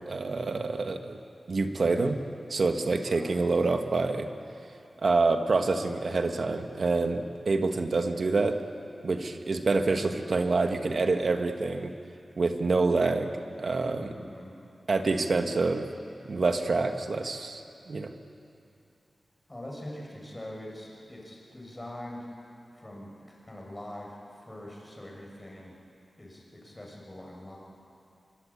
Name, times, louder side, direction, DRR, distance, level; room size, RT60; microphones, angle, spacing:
voice 1, 0.1-1.2 1.5-2.2 2.5-4.3 5.0-8.6 9.0-11.9 12.4-13.3 13.6-14.1 14.9-15.8 16.3-18.1, right 3 dB, 65° right, 6 dB, 1.7 m, -27 dB
voice 2, 3.0-3.5 14.1-14.5 19.5-22.3 22.8-25.7 26.2-27.6, left 1 dB, 20° left, -2 dB, 6.8 m, -43 dB
24.0 x 23.5 x 8.7 m, 2.7 s
wide cardioid pair, 75°, 0 cm